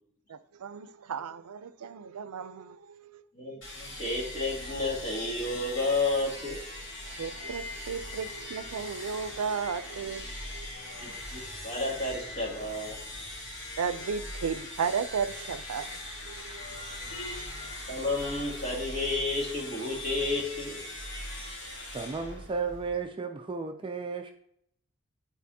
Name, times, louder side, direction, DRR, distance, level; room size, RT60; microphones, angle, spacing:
voice 1, 0.3-3.2 7.0-10.2 10.5-10.7 13.8-17.5, right 6 dB, 80° right, 0.5 m, -35 dB
voice 2, 3.3-6.6 10.9-13.0 17.9-20.8, left 2 dB, 40° left, 2.4 m, -31 dB
sound 1, 3.6-23.1, left 1 dB, 60° left, 2.5 m, -41 dB
voice 3, 21.9-24.3, right 5 dB, 20° right, 0.3 m, -34 dB
10.5 x 4.1 x 2.8 m
head